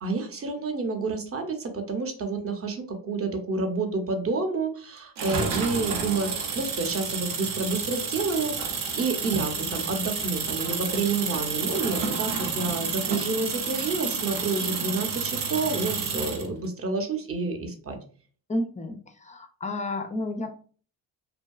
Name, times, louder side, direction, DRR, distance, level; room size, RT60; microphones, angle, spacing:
voice 1, 0.0-8.7 9.0-18.0, right 3 dB, 30° right, 4 dB, 0.7 m, -29 dB
sound 1, 5.2-16.5, right 5 dB, 75° right, 0.6 m, -30 dB
voice 2, 18.5-20.5, left 1 dB, 20° left, 6 dB, 0.3 m, -31 dB
2.7 x 2.2 x 2.3 m, 0.42 s
supercardioid pair, 50°, 45 cm